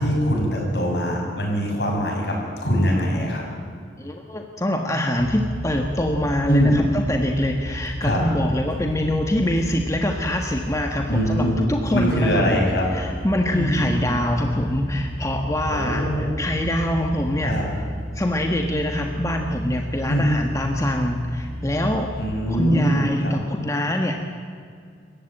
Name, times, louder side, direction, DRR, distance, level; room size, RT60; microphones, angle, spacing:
voice 1, 0.0-2.4 2.6-3.4 6.5-6.8 8.0-8.2 11.1-11.6 11.9-12.9 13.5-14.1 15.7-16.3 17.4-17.6 20.1-20.3 22.2-23.3, equal, 65° left, -1 dB, 7.4 m, -22 dB
voice 2, 4.0-12.4 12.9-17.6 18.1-22.1 22.5-24.2, left 1 dB, 15° left, 3 dB, 1.4 m, -24 dB
sound 1, 5.2-22.8, equal, 25° right, 3.0 m, -33 dB
27.5 x 15.5 x 9.0 m, 2.2 s
head